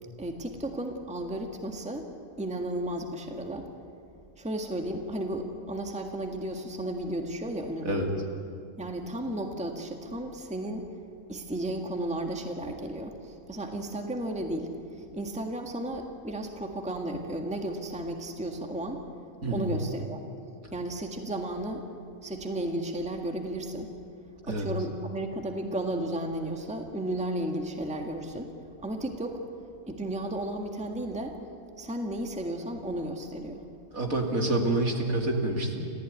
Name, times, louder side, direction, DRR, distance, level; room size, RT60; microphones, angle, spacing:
voice 1, 0.2-2.1 2.4-3.7 4.4-7.9 8.8-10.8 11.3-14.7 15.0-19.0 19.5-20.2 20.7-21.8 22.2-23.9 24.4-28.5 28.8-29.4 29.8-31.4 31.8-33.6, right 1 dB, 5° right, 3 dB, 1.7 m, -33 dB
voice 2, 33.9-35.9, right 2 dB, 60° right, 2 dB, 3.0 m, -27 dB
28.5 x 15.0 x 9.6 m, 2.4 s
omnidirectional pair, 1.7 m